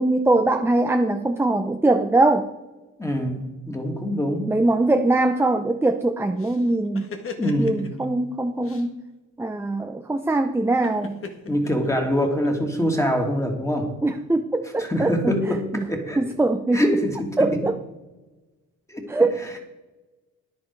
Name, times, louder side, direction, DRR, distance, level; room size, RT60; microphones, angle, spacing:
voice 1, 0.0-2.5 4.5-7.1 7.6-8.9 9.4-11.2 14.0-15.3 15.7-15.9 16.2-16.8 17.4-17.8 19.1-19.6, right 2 dB, 10° right, 6 dB, 0.7 m, -22 dB
voice 2, 3.0-4.5 7.4-7.9 11.5-13.9 14.8-15.6 15.9-16.2 16.7-17.3 18.9-19.0, equal, 10° left, 2 dB, 2.6 m, -24 dB
sound 1, 6.4-8.1 8.6-8.9 10.8-12.5, left 4 dB, 45° left, 1.6 m, -38 dB
10.5 x 10.5 x 4.8 m, 1.2 s
cardioid pair, 90°, 30 cm